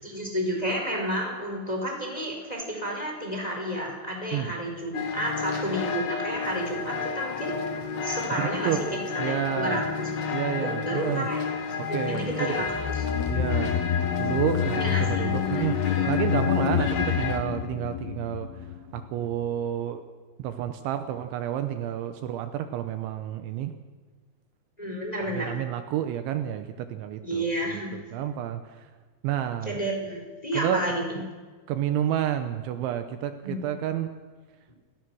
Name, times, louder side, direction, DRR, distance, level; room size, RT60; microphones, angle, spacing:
voice 1, 0.0-7.6 8.0-8.8 9.1-11.4 11.9-13.1 14.8-15.7 16.4-16.7 24.8-25.6 27.2-27.9 29.6-31.2 33.4-33.6, equal, 10° left, 0 dB, 3.9 m, -31 dB
sound 1, 4.9-17.4, left 5 dB, 55° left, 2.0 m, -31 dB
voice 2, 8.4-8.8 9.2-9.8 10.3-11.3 11.8-12.5 13.3-13.8 14.2-15.7 16.0-18.5 18.9-20.0 20.4-23.7 25.3-28.6 29.2-29.7 30.5-30.8 31.7-34.1, right 11 dB, 80° right, 8 dB, 3.1 m, -30 dB
sound 2, 12.6-19.1 19.3-19.4, left 10 dB, 75° left, 2.5 m, -28 dB
29.5 x 17.5 x 6.3 m, 1.4 s
omnidirectional pair, 5.7 m